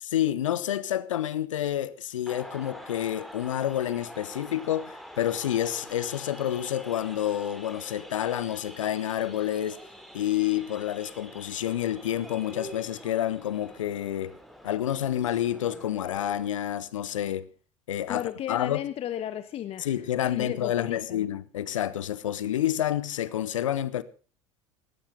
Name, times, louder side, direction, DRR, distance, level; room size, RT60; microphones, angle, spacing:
voice 1, 0.0-9.8 10.1-14.4 14.6-17.5 17.9-18.8 19.8-24.0, left 11 dB, 70° left, 0.8 m, -29 dB
sound 1, 2.3-16.5, equal, ahead, 3.0 m, -46 dB
voice 2, 18.1-21.2, left 11 dB, 35° left, 0.9 m, -34 dB
17.5 x 14.5 x 3.8 m
figure-of-eight pair, 70°, 17 cm